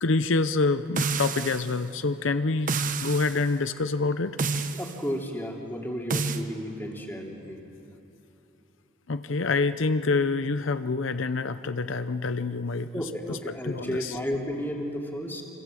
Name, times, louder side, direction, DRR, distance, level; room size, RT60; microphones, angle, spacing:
voice 1, 0.0-2.7 3.0-4.4 9.1-13.4 13.6-14.2, left 3 dB, 70° left, 11 dB, 0.7 m, -27 dB
sound 1, 1.0-1.7 2.7-3.4 4.4-5.0 6.1-6.4, right 4 dB, 40° right, 1.1 m, -28 dB
voice 2, 4.7-7.6 12.9-15.4, equal, 10° left, -1 dB, 2.9 m, -33 dB
28.0 x 25.5 x 7.7 m, 2.9 s
head